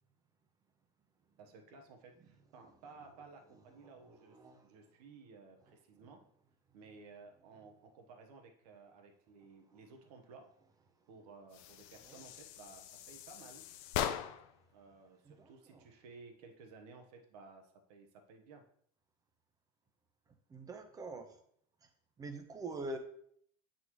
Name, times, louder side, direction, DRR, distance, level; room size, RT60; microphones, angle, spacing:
voice 1, 1.4-6.2 6.7-10.5 11.1-13.6 14.7-18.6, right 4 dB, 85° right, 4 dB, 1.1 m, -56 dB
voice 2, 4.1-4.6 12.1-12.2 15.3-15.8 20.5-21.4 22.2-23.0, right 2 dB, 20° right, 6 dB, 0.7 m, -45 dB
sound 1, 11.5-14.6, left 10 dB, 65° left, 0.5 m, -41 dB
8.2 x 4.0 x 3.1 m, 0.65 s
supercardioid pair, 150°, 20 cm